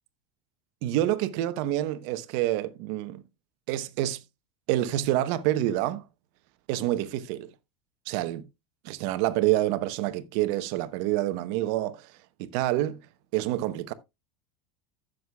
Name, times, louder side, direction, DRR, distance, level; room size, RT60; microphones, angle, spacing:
voice 1, 0.8-3.2 3.7-4.2 4.7-6.0 6.7-7.5 8.1-8.4 8.8-12.1 12.4-13.0 13.3-13.9, right 14 dB, 60° right, 1.0 m, -27 dB
15.5 x 6.5 x 2.3 m
hypercardioid pair, 100°, 16 cm